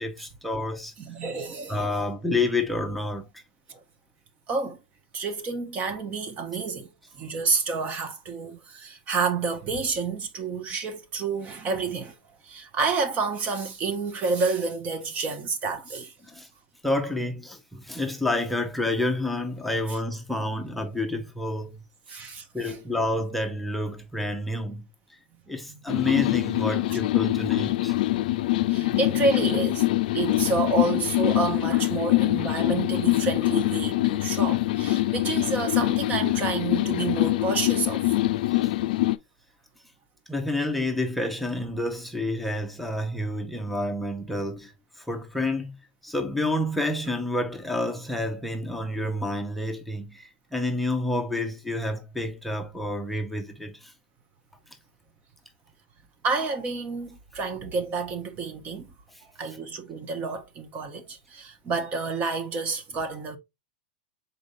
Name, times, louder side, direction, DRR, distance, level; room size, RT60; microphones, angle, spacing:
voice 1, 0.0-0.9 1.7-3.4 16.2-16.5 16.8-21.8 22.5-25.2 25.5-28.0 38.5-38.7 40.3-45.8 46.0-53.9 59.1-59.2, left 2 dB, ahead, 0.7 m, -29 dB
voice 2, 1.0-1.9 3.7-3.8 4.5-4.8 5.1-6.9 7.2-12.1 12.4-16.1 22.1-22.8 25.7-25.8 28.7-29.9 30.1-38.3 56.2-58.9 59.4-63.4, right 4 dB, 30° right, 0.9 m, -29 dB
sound 1, 25.9-39.2, left 17 dB, 65° left, 0.4 m, -24 dB
5.1 x 4.0 x 2.6 m
supercardioid pair, 135°, 5 cm